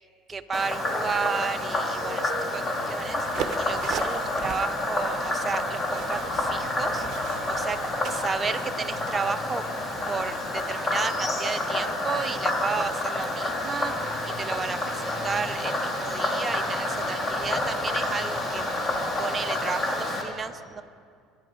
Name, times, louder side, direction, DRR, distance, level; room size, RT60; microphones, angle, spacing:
voice 1, 0.3-7.8 8.1-9.6 10.1-20.8, right 5 dB, 30° right, 9 dB, 0.9 m, -33 dB
Frog, 0.5-20.2, left 1 dB, 30° left, 2.7 m, -29 dB
sound 1, 3.2-8.7, right 7 dB, 50° right, 1.0 m, -38 dB
24.5 x 10.5 x 5.1 m, 2.2 s
supercardioid pair, 80°, 0 cm